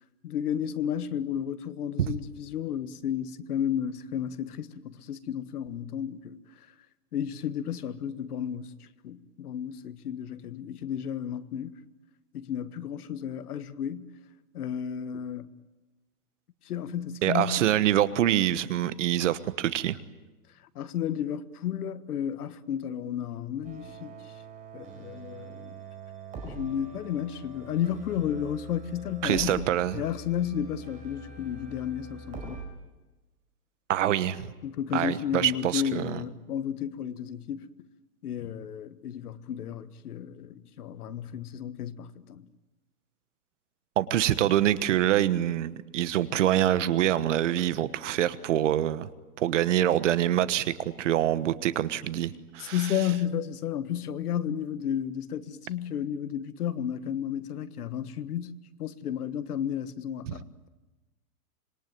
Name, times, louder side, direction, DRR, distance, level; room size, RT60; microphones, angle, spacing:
voice 1, 0.2-6.7 7.1-11.8 12.3-14.1 14.5-15.5 16.6-17.7 20.7-24.3 24.7-25.8 26.4-29.7 29.9-32.6 34.6-37.7 38.2-42.5 52.6-60.7, left 9 dB, 70° left, 1.5 m, -33 dB
voice 2, 17.2-20.0 29.2-30.0 33.9-34.5 34.9-36.2 44.0-49.1 49.4-52.8 60.3-60.4, right 12 dB, 50° right, 1.3 m, -25 dB
sound 1, 23.6-32.6, right 3 dB, 15° right, 4.8 m, -44 dB
26.5 x 21.5 x 9.2 m
supercardioid pair, 170°, 47 cm